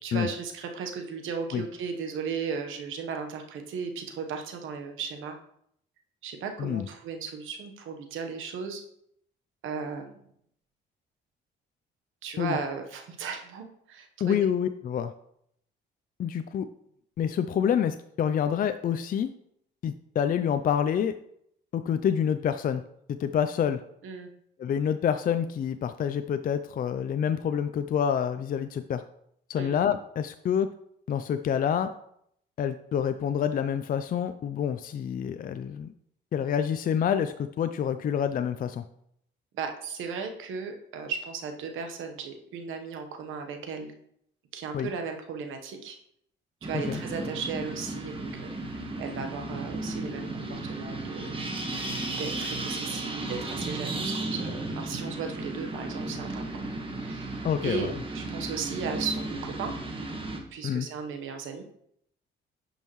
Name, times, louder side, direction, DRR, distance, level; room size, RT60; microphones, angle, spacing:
voice 1, 0.0-5.4 6.2-8.8 9.6-10.2 12.2-14.4 24.0-24.3 29.6-29.8 39.5-43.9 44.5-46.0 46.6-48.5 49.0-51.4 52.2-56.6 57.0-57.4 57.6-59.7 60.5-61.6, right 5 dB, 80° right, 5 dB, 1.1 m, -36 dB
voice 2, 14.2-15.1 16.2-16.7 17.2-19.3 19.8-21.1 21.7-22.8 23.1-23.8 24.6-29.0 29.5-30.7 31.1-31.9 32.6-35.9 36.3-38.8 44.7-44.9 46.9-47.0 57.4-57.9 60.6-60.9, left 8 dB, 45° left, 10 dB, 0.4 m, -27 dB
sound 1, 46.6-60.4, right 2 dB, 25° right, 1.4 m, -34 dB
10.0 x 5.5 x 3.1 m, 0.71 s
cardioid pair, 90°, 20 cm